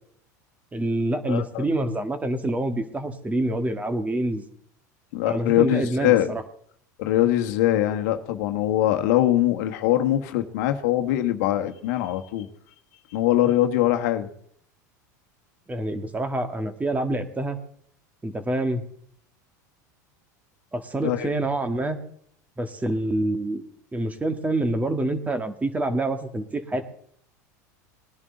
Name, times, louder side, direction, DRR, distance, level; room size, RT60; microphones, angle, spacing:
voice 1, 0.7-4.4 5.3-6.4 15.7-17.6 18.2-18.8 20.7-22.0 22.6-23.6 23.9-26.8, right 1 dB, 15° right, 9 dB, 1.7 m, -26 dB
voice 2, 1.3-1.6 5.1-6.3 7.0-12.5 13.1-14.3 21.0-21.3, left 13 dB, 70° left, 6 dB, 1.3 m, -22 dB
20.0 x 11.0 x 3.9 m, 0.64 s
hypercardioid pair, 95°, 10 cm